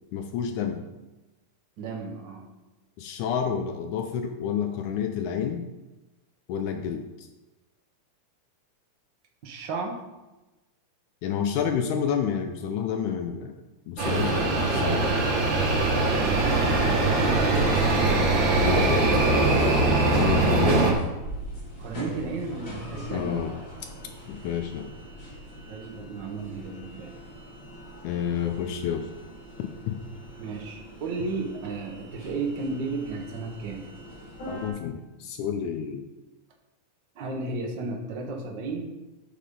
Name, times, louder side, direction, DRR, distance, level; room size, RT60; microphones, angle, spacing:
voice 1, 0.1-0.8 3.0-5.7 6.5-7.3 11.2-13.5 13.9-15.2 18.6-19.1 20.1-20.8 23.1-23.6 24.3-24.9 28.0-29.1 29.6-30.0 34.5-36.1, left 7 dB, 80° left, 6 dB, 2.0 m, -29 dB
voice 2, 1.8-2.5 9.4-10.0 16.1-17.7 21.8-23.3 25.6-27.1 30.4-33.8 37.1-38.9, right 3 dB, 70° right, 2 dB, 1.0 m, -34 dB
sound 1, 14.0-20.9, right 2 dB, 45° right, 1.8 m, -22 dB
sound 2, 16.8-34.7, equal, 55° left, 4.1 m, -43 dB
10.0 x 6.6 x 3.8 m, 1.1 s
omnidirectional pair, 3.5 m